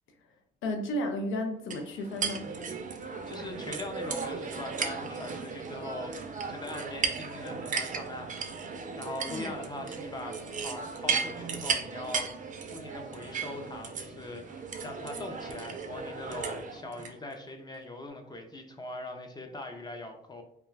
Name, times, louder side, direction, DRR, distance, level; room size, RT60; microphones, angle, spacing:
voice 1, 0.6-2.6 9.3-9.5, left 1 dB, 80° left, 5 dB, 0.4 m, -33 dB
sound 1, 1.7-17.1, right 5 dB, 40° right, 0.4 m, -36 dB
voice 2, 3.3-6.1 6.5-8.5 9.0-20.4, left 2 dB, 20° left, 3 dB, 0.5 m, -41 dB
2.3 x 2.2 x 3.2 m, 0.69 s
cardioid pair, 90°, 20 cm